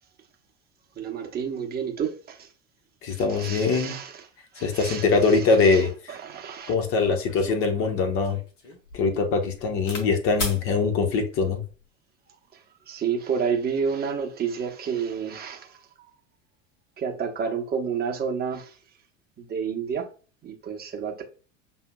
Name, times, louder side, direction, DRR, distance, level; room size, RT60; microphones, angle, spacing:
voice 1, 1.0-2.1 3.4-4.1 4.6-5.0 5.7-5.8 6.1-6.7 12.9-15.7 17.0-18.6 19.5-20.0 20.4-21.2, right 6 dB, 25° right, 1.0 m, -29 dB
voice 2, 3.0-4.0 4.6-6.2 6.7-8.4 8.9-11.6, left 4 dB, 35° left, 1.0 m, -23 dB
sound 1, 7.2-10.1 10.4-10.6 11.5-11.9, left 3 dB, 70° left, 1.4 m, -36 dB
7.1 x 2.7 x 2.2 m
figure-of-eight pair, 80°, 37 cm